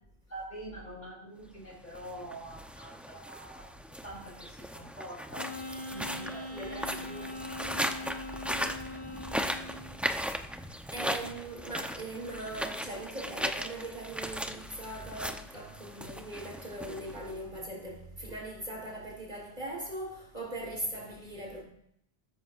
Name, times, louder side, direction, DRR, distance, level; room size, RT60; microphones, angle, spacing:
voice 1, 0.3-3.7 4.0-5.5 5.9-6.5 6.9-7.4 9.5-9.7, right 1 dB, 45° left, 5.7 m, -45 dB
sound 1, 1.8-17.6, equal, ahead, 0.6 m, -38 dB
Wind instrument woodwind instrument, 5.3-10.0, left 2 dB, 85° left, 2.7 m, -41 dB
voice 2, 6.5-8.1 8.7-9.1 10.9-21.6, right 1 dB, 45° right, 4.2 m, -40 dB
15.0 x 13.5 x 2.6 m
omnidirectional pair, 1.1 m